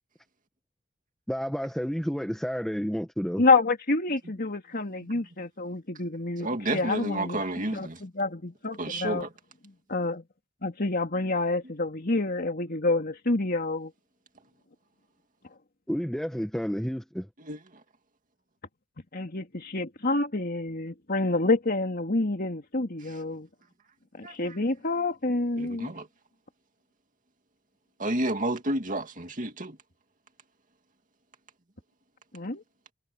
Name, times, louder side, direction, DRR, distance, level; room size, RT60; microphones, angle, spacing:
voice 1, 1.3-3.4 15.9-17.3, equal, ahead, 1.3 m, -30 dB
voice 2, 3.4-7.4 7.7-9.3 9.9-10.2 10.6-13.9 19.1-23.5 24.1-25.9 32.3-32.6, left 3 dB, 45° left, 2.8 m, -28 dB
voice 3, 6.4-8.0 8.8-9.3 17.4-17.8 24.2-24.5 25.6-26.1 28.0-29.8, right 1 dB, 40° right, 2.3 m, -31 dB
head